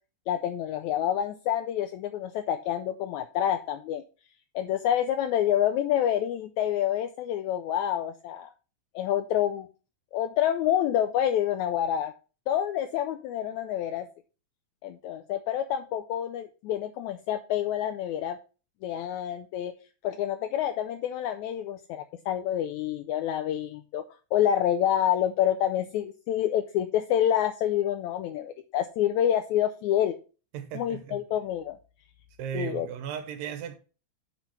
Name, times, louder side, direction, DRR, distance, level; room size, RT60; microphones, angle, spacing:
voice 1, 0.3-4.0 4.5-8.5 8.9-9.7 10.1-12.1 12.5-14.1 14.8-18.4 18.8-19.7 20.0-24.0 24.3-30.2 30.7-31.8 32.5-32.9, left 10 dB, 90° left, 1.6 m, -27 dB
voice 2, 30.5-31.2 32.4-33.7, right 9 dB, 90° right, 2.5 m, -36 dB
6.2 x 5.3 x 5.7 m
omnidirectional pair, 3.9 m